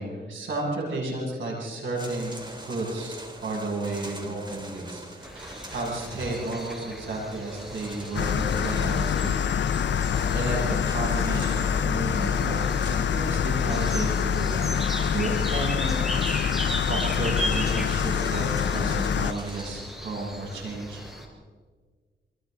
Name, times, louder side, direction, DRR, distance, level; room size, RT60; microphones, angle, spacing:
voice 1, 0.0-9.6 10.3-16.1 16.9-21.0, right 2 dB, 85° right, -3 dB, 7.8 m, -32 dB
sound 1, 1.9-19.7, right 1 dB, 25° right, 3.9 m, -44 dB
sound 2, 5.2-21.3, equal, ahead, 5.4 m, -37 dB
sound 3, 8.1-19.3, left 8 dB, 70° left, 0.6 m, -25 dB
29.0 x 24.0 x 4.1 m, 1.5 s
cardioid pair, 75°, 19 cm